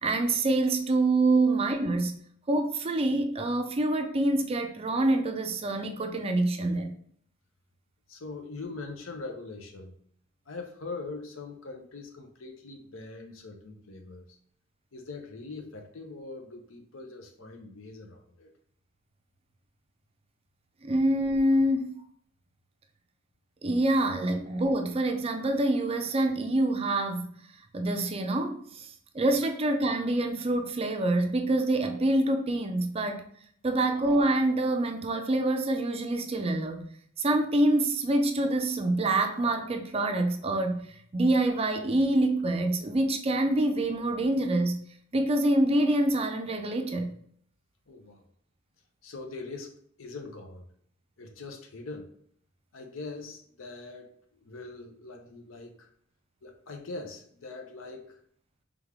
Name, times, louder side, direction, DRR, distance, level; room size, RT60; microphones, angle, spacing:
voice 1, 0.0-2.1 2.5-6.9 20.8-22.0 23.6-27.3 27.7-33.3 33.6-36.8 37.2-40.8 41.1-44.8 45.1-47.1, right 1 dB, 30° right, 6 dB, 0.4 m, -26 dB
voice 2, 8.1-9.9 10.5-14.3 14.9-18.5 47.9-48.2 49.0-50.7 51.2-52.1 52.7-55.9 56.4-58.2, left 3 dB, 70° left, 3 dB, 0.8 m, -42 dB
3.5 x 3.4 x 3.6 m, 0.62 s
head